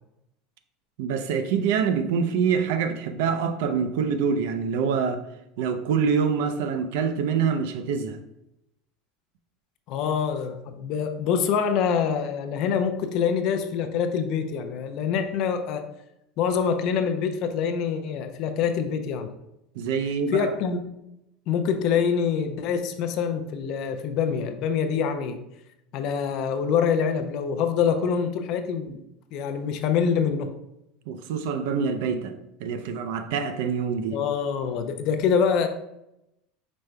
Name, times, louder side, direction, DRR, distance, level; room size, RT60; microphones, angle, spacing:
voice 1, 1.0-5.2 5.6-8.2 19.8-20.5 31.1-34.2, right 6 dB, 65° right, 9 dB, 0.4 m, -25 dB
voice 2, 9.9-15.8 16.4-19.3 20.3-20.8 21.5-25.4 25.9-29.0 29.3-30.5 34.1-35.7, left 7 dB, 40° left, 7 dB, 0.4 m, -25 dB
5.1 x 2.1 x 4.5 m, 0.85 s
cardioid pair, 175°, 0 cm